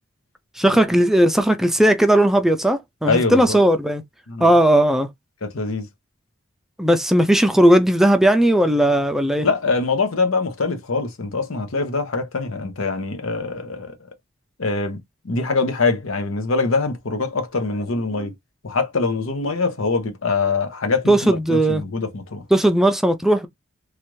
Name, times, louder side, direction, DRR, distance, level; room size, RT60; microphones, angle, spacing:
voice 1, 0.6-4.0 4.4-5.1 6.8-9.5 21.1-21.8 22.5-23.5, right 1 dB, ahead, 0.4 m, -17 dB
voice 2, 3.0-3.6 4.3-4.5 5.4-5.9 9.4-13.9 14.6-15.0 15.2-18.3 18.6-22.4, left 4 dB, 80° left, 0.8 m, -23 dB
3.2 x 2.4 x 3.1 m
head